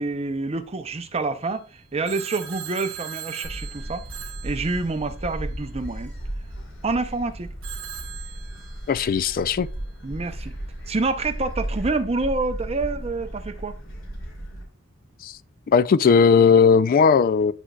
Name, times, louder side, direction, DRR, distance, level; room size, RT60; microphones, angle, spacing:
voice 1, 0.0-4.1 4.4-6.1 6.8-7.5 10.0-10.6 10.9-13.8, right 3 dB, 30° right, 0.6 m, -27 dB
Telephone, 2.0-5.3 7.6-9.1, right 10 dB, 75° right, 0.9 m, -39 dB
Gull seagull, 3.4-14.6, right 1 dB, 70° left, 2.9 m, -35 dB
voice 2, 8.9-9.7 15.2-15.4 15.7-17.5, left 6 dB, 45° left, 0.3 m, -17 dB
9.1 x 6.2 x 2.3 m
head